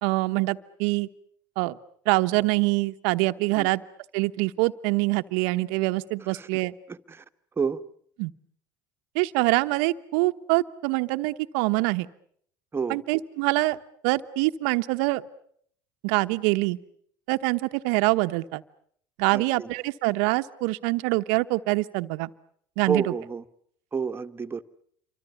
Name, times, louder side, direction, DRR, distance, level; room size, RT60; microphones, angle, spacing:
voice 1, 0.0-1.1 1.6-1.8 2.0-3.8 4.1-6.7 8.2-8.3 9.1-12.1 12.9-13.8 14.0-15.2 16.0-16.8 17.3-18.6 19.2-22.3 22.8-23.1, right 22 dB, 70° right, 11 dB, 1.1 m, -25 dB
voice 2, 19.3-19.7 22.9-23.4 23.9-24.6, right 5 dB, 25° right, 9 dB, 1.5 m, -29 dB
27.5 x 24.5 x 7.1 m, 0.64 s
hypercardioid pair, 75°, 10 cm